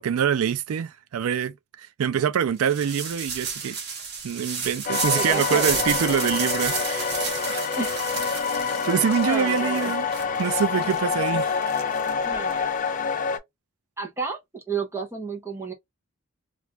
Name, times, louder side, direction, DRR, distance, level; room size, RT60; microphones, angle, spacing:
voice 1, 0.0-3.8 4.2-7.6 8.3-8.4 8.8-10.1 10.4-11.6, right 8 dB, 85° right, 0.4 m, -25 dB
sound 1, 2.6-12.5, right 5 dB, 50° right, 0.8 m, -32 dB
sound 2, 4.9-13.4, left 6 dB, 35° left, 0.4 m, -27 dB
voice 2, 5.2-6.1 7.8-7.9 9.2-9.9 12.2-12.7 14.0-15.7, right 4 dB, 10° right, 0.6 m, -31 dB
2.5 x 2.3 x 2.9 m
head